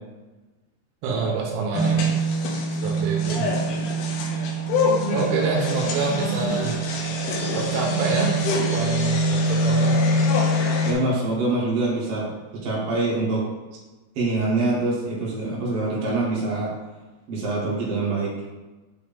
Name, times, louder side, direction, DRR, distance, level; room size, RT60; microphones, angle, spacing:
voice 1, 1.0-2.2 2.8-3.5 5.1-6.8 7.5-10.0, right 4 dB, 85° right, 0 dB, 3.3 m, -27 dB
sound 1, 1.7-10.9, equal, 80° left, 2.4 m, -23 dB
voice 2, 10.8-13.5 14.1-16.7 17.3-18.3, right 2 dB, 65° right, -6 dB, 1.5 m, -25 dB
8.9 x 3.2 x 3.5 m, 1.2 s
omnidirectional pair, 5.5 m